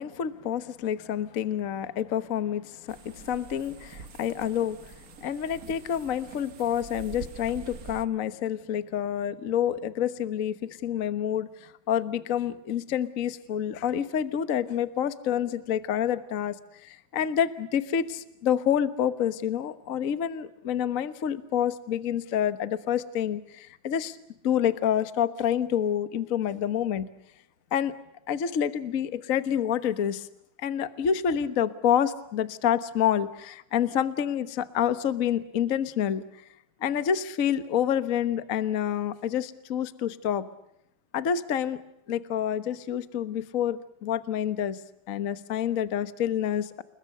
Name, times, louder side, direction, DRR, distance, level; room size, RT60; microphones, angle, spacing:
voice 1, 0.0-4.9 5.2-16.6 16.8-24.2 24.4-27.1 27.7-27.9 28.3-30.3 30.6-36.2 36.8-40.5 41.1-41.8 42.1-44.8 45.1-46.8, left 9 dB, 70° left, 12 dB, 0.8 m, -28 dB
sound 1, 2.9-8.0, right 6 dB, 85° right, 0.8 m, -45 dB
29.0 x 21.5 x 6.7 m, 0.80 s
omnidirectional pair, 3.4 m